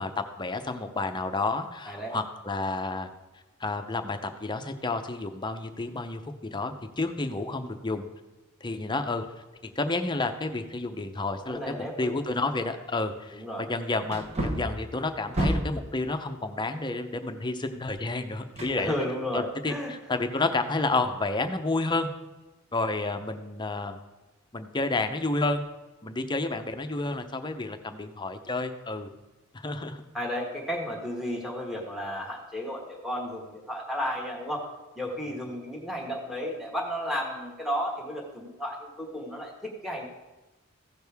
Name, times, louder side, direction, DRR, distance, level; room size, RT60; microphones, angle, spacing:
voice 1, 0.0-3.1 3.6-6.2 6.5-8.1 8.6-9.2 9.6-18.9 19.3-22.1 22.7-24.0 24.5-25.6 26.0-29.1 29.5-30.0, left 2 dB, 20° left, 7 dB, 0.7 m, -30 dB
voice 2, 11.5-12.2 13.3-13.6 18.7-19.9 30.1-34.7 35.0-40.0, equal, ahead, -2 dB, 1.4 m, -33 dB
Wood, 12.7-12.8 14.1-15.9 18.5-19.3 19.7-19.8, right 1 dB, 30° right, 1.1 m, -30 dB
15.5 x 6.3 x 3.5 m, 1.1 s
head